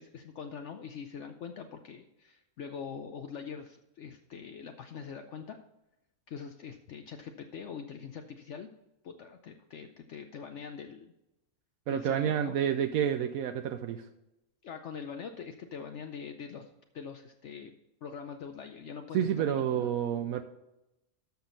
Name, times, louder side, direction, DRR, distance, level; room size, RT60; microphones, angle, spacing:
voice 1, 0.0-5.6 6.3-8.7 9.0-11.1 11.9-12.6 14.6-16.7 16.9-17.7 18.0-19.9, left 6 dB, 60° left, 6 dB, 0.9 m, -43 dB
voice 2, 11.9-14.0 19.1-20.4, right 9 dB, 80° right, 8 dB, 1.0 m, -29 dB
12.5 x 6.1 x 3.9 m, 0.93 s
omnidirectional pair, 1.5 m